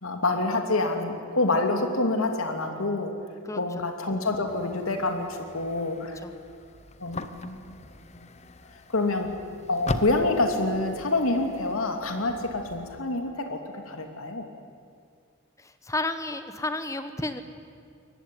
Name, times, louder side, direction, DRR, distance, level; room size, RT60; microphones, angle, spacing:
voice 1, 0.0-3.2 3.6-6.2 7.0-7.6 8.2-8.3 8.9-9.3 9.7-14.5, left 2 dB, 85° left, 5 dB, 2.8 m, -27 dB
voice 2, 3.4-3.8 6.2-6.3 15.6-17.4, left 2 dB, 15° left, 9 dB, 1.1 m, -32 dB
sound 1, 4.5-13.0, left 2 dB, 30° left, 1.0 m, -40 dB
23.0 x 19.5 x 9.3 m, 2.2 s
head